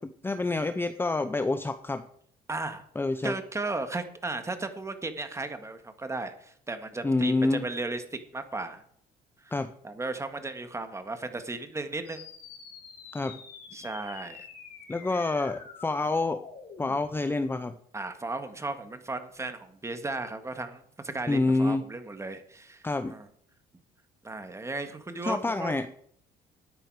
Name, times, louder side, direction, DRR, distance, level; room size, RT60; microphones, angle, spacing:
voice 1, 0.0-2.0 3.0-3.3 7.0-7.6 9.5-9.7 13.1-13.4 14.9-16.4 16.8-17.8 21.3-21.8 22.8-23.1 25.2-25.9, left 3 dB, 15° left, 10 dB, 0.7 m, -27 dB
voice 2, 2.5-2.8 3.2-8.8 9.4-9.5 9.8-12.2 13.7-14.4 15.0-15.2 17.9-23.3 24.2-25.8, right 2 dB, 15° right, 8 dB, 1.8 m, -35 dB
sound 1, 12.1-17.1, left 6 dB, 65° left, 4.3 m, -47 dB
12.5 x 9.8 x 4.8 m, 0.65 s
cardioid pair, 110°, 17 cm